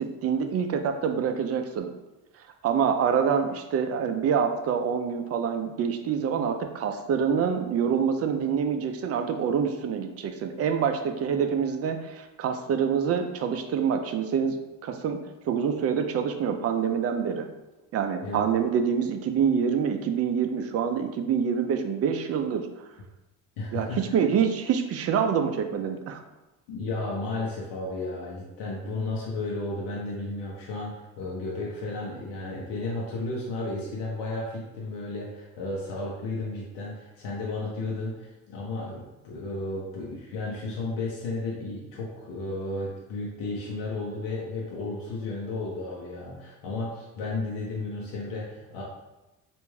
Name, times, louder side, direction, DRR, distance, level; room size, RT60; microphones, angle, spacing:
voice 1, 0.0-1.9 2.6-17.5 17.9-22.7 23.7-26.2, right 7 dB, 45° right, 6 dB, 0.4 m, -26 dB
voice 2, 23.6-24.0 26.7-48.8, left 2 dB, 85° left, -4 dB, 0.8 m, -33 dB
3.3 x 2.5 x 3.1 m, 1.0 s
cardioid pair, 100°, 34 cm